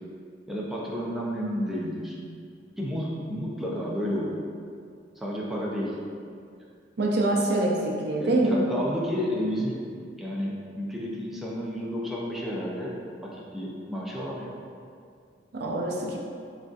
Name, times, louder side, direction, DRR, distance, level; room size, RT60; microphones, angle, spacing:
voice 1, 0.5-2.2 2.8-4.4 5.2-6.0 8.2-9.8 10.2-12.9 13.2-14.5, equal, ahead, -5 dB, 0.5 m, -31 dB
voice 2, 7.0-8.6 15.5-16.2, right 2 dB, 65° right, -1 dB, 0.5 m, -25 dB
6.1 x 2.5 x 2.4 m, 2.3 s
head